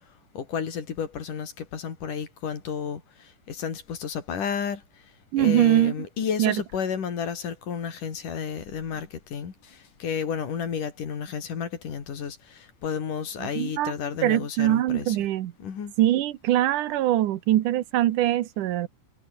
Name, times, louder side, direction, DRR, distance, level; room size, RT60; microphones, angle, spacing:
voice 1, 0.3-4.8 5.4-15.2 15.6-15.9, left 7 dB, 90° left, 4.8 m, -32 dB
voice 2, 5.3-5.9 6.4-6.6 13.4-13.9 14.2-15.5 16.0-18.9, right 13 dB, 85° right, 2.7 m, -22 dB
omnidirectional pair, 3.6 m